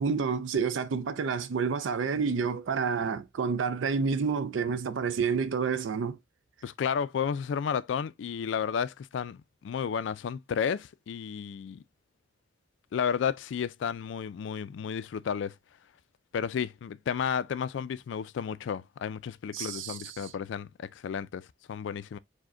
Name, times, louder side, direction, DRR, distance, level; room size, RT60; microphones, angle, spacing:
voice 1, 0.0-6.2 19.5-20.3, right 5 dB, 75° right, 0.4 m, -29 dB
voice 2, 6.6-11.8 12.9-15.5 16.3-22.2, left 7 dB, 65° left, 0.3 m, -32 dB
4.9 x 2.1 x 3.6 m
head